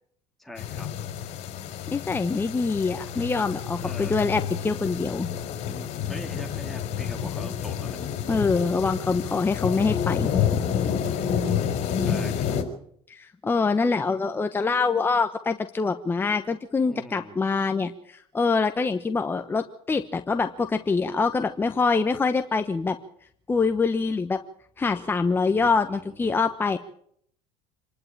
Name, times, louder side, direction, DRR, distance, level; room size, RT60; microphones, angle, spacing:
voice 1, 0.4-0.9 3.8-4.2 6.1-8.0 10.5-10.6 12.0-12.6 16.8-17.4 25.5-26.3, left 2 dB, ahead, 2 dB, 2.6 m, -41 dB
sound 1, 0.6-12.6, left 8 dB, 60° left, 4.4 m, -29 dB
voice 2, 1.9-5.3 8.3-10.3 13.1-23.0 23.5-24.4 24.8-26.8, left 4 dB, 15° left, 7 dB, 1.1 m, -25 dB
26.5 x 11.5 x 8.8 m, 0.65 s
cardioid pair, 120°, 13 cm